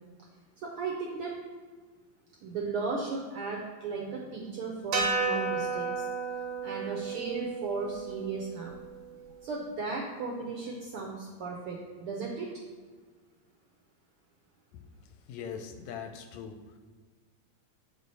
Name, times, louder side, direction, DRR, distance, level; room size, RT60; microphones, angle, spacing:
voice 1, 0.6-1.3 2.4-6.0 6.6-8.7 9.4-12.5, right 4 dB, 75° right, -1 dB, 1.3 m, -35 dB
sound 1, 4.9-9.3, right 4 dB, 90° right, 2.4 m, -33 dB
voice 2, 14.7-16.8, left 7 dB, 80° left, 7 dB, 1.8 m, -42 dB
8.0 x 4.9 x 4.0 m, 1.5 s
omnidirectional pair, 3.3 m